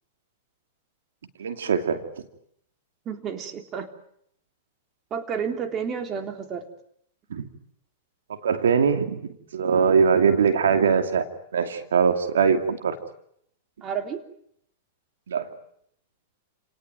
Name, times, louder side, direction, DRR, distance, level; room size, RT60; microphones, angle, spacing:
voice 1, 1.4-2.0 7.3-7.4 8.4-9.2 9.5-11.2 11.5-13.0 15.3-15.5, right 6 dB, 85° right, 7 dB, 2.5 m, -21 dB
voice 2, 3.0-3.9 5.1-6.7 13.8-14.2, right 7 dB, 30° right, 6 dB, 3.4 m, -31 dB
29.5 x 19.0 x 9.3 m, 0.72 s
hypercardioid pair, 125°, 0 cm